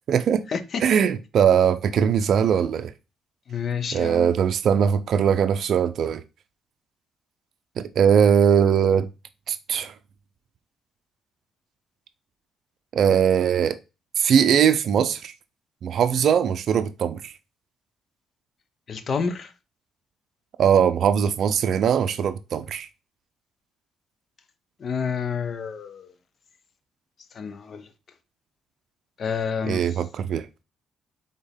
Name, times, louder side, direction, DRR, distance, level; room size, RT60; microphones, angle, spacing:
voice 1, 0.1-0.4 0.8-2.9 3.9-6.2 7.8-9.1 9.5-9.9 12.9-13.8 14.2-15.3 15.8-17.3 20.6-22.9 29.6-30.5, right 8 dB, 65° right, 0.4 m, -20 dB
voice 2, 3.5-4.3 18.9-19.5 24.8-26.1 27.4-27.9 29.2-29.8, left 6 dB, 50° left, 0.7 m, -28 dB
4.3 x 3.5 x 3.4 m
cardioid pair, 90°, 0 cm